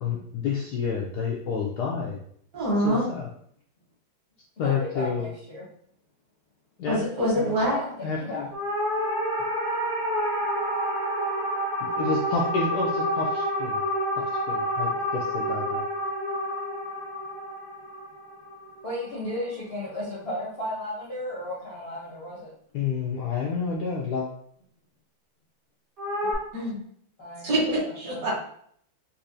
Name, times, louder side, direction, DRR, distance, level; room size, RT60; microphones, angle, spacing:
voice 1, 0.0-2.2 2.8-3.3 4.6-5.3 6.8-7.0 7.4-7.6 8.0-8.5 12.0-13.8 14.5-15.8 22.7-24.3, left 5 dB, 75° left, -2 dB, 0.9 m, -29 dB
voice 2, 2.5-3.0 6.9-7.8 26.5-26.8 27.4-28.4, right 1 dB, 55° right, -5 dB, 1.8 m, -25 dB
voice 3, 4.6-5.6 7.7-8.4 18.8-22.5 27.2-27.5 27.8-28.4, left 1 dB, 50° left, -6 dB, 0.7 m, -34 dB
sound 1, 8.5-19.0 26.0-26.3, equal, 35° right, 1.1 m, -28 dB
4.3 x 2.6 x 2.6 m, 0.64 s
omnidirectional pair, 2.2 m